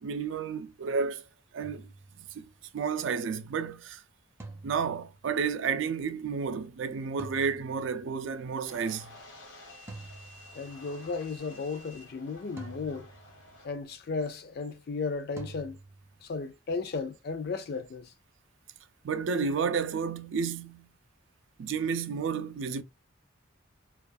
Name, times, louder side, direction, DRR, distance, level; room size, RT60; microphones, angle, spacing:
voice 1, 0.0-1.2 1.5-1.9 2.2-2.5 2.7-4.0 4.6-9.1 19.0-20.9 21.6-22.8, right 5 dB, 75° right, 0.4 m, -31 dB
sound 1, 1.6-2.6 4.4-5.5 7.2-8.3 9.9-11.0 12.6-13.7 15.4-16.2, right 2 dB, 15° right, 0.4 m, -48 dB
sound 2, 8.6-13.7, left 1 dB, 80° left, 1.0 m, -51 dB
voice 2, 10.5-13.1 13.6-15.8 16.2-18.1, left 4 dB, 50° left, 0.4 m, -35 dB
2.4 x 2.2 x 2.5 m
head